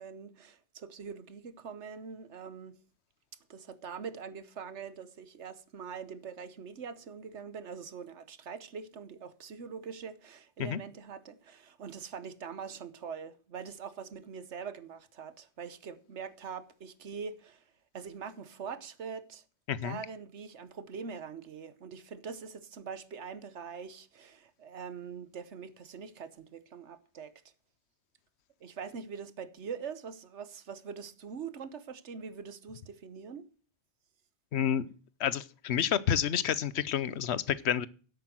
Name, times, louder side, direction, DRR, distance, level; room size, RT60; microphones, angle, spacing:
voice 1, 0.0-2.8 3.5-17.6 17.9-19.4 19.8-27.3 28.6-33.5, right 6 dB, 85° right, 1.4 m, -43 dB
voice 2, 19.7-20.0 34.5-34.9 35.2-37.9, left 9 dB, 75° left, 1.0 m, -29 dB
10.0 x 8.4 x 7.6 m
omnidirectional pair, 1.1 m